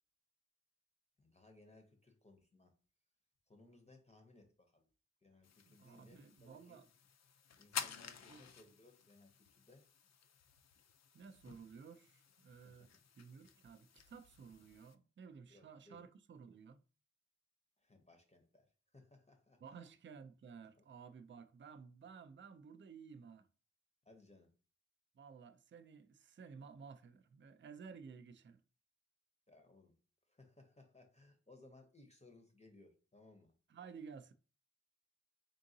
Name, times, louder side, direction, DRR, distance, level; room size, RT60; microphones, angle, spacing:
voice 1, 1.2-2.7 3.5-4.8 5.2-6.8 7.6-9.9 12.6-13.0 15.5-16.0 17.8-19.6 20.8-20.9 24.1-24.5 29.5-29.9 30.3-33.5, left 2 dB, 20° left, 0.7 m, -63 dB
sound 1, 5.4-14.9, left 7 dB, 55° left, 0.4 m, -51 dB
voice 2, 5.7-6.9 8.3-8.4 11.1-12.9 13.2-16.8 19.6-23.5 25.2-28.6 33.7-34.3, right 6 dB, 40° right, 0.4 m, -55 dB
3.7 x 3.7 x 2.7 m
wide cardioid pair, 95°, 31 cm